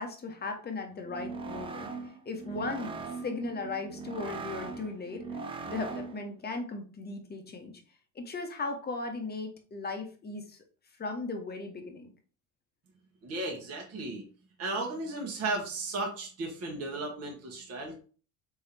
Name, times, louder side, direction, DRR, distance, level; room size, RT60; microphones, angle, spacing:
voice 1, 0.0-1.9 2.2-3.0 3.2-5.2 5.7-7.8 8.1-10.6 11.0-12.1, left 3 dB, 25° left, 5 dB, 1.0 m, -37 dB
sound 1, 1.0-6.3, right 4 dB, 15° right, 0.3 m, -40 dB
voice 2, 13.2-14.2 14.6-17.9, right 2 dB, 35° right, 0 dB, 1.2 m, -35 dB
3.7 x 3.4 x 2.9 m, 0.39 s
hypercardioid pair, 75°, 42 cm